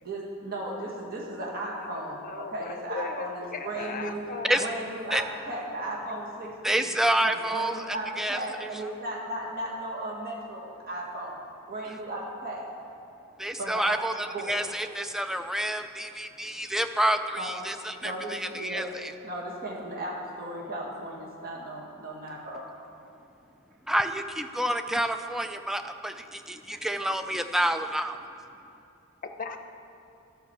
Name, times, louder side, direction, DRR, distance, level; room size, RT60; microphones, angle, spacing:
voice 1, 0.0-4.2 4.6-7.0 7.5-11.4 11.7-12.7 13.6-14.0 14.3-14.6 17.4-17.5 18.0-18.9 19.2-22.6, right 1 dB, 45° right, -3 dB, 1.8 m, -36 dB
voice 2, 2.1-4.7 29.2-29.6, left 4 dB, 40° left, 6 dB, 0.7 m, -37 dB
voice 3, 6.6-8.7 13.4-19.1 23.9-28.2, right 1 dB, ahead, 8 dB, 0.4 m, -28 dB
12.0 x 6.0 x 7.0 m, 2.8 s
head